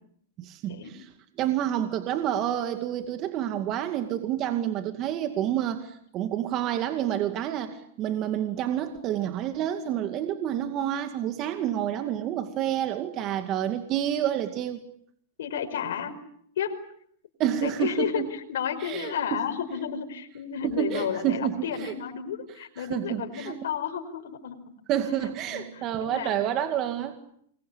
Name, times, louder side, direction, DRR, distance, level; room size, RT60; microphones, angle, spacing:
voice 1, 0.4-1.1 1.4-14.8 17.4-18.3 18.8-19.4 20.6-21.9 22.8-23.6 24.9-27.2, right 11 dB, 35° right, 8 dB, 2.2 m, -29 dB
voice 2, 15.4-16.1 16.6-16.8 17.6-24.6 25.2-26.4, left 8 dB, 75° left, 3 dB, 4.9 m, -32 dB
28.0 x 22.5 x 8.6 m, 0.67 s
hypercardioid pair, 135°, 0 cm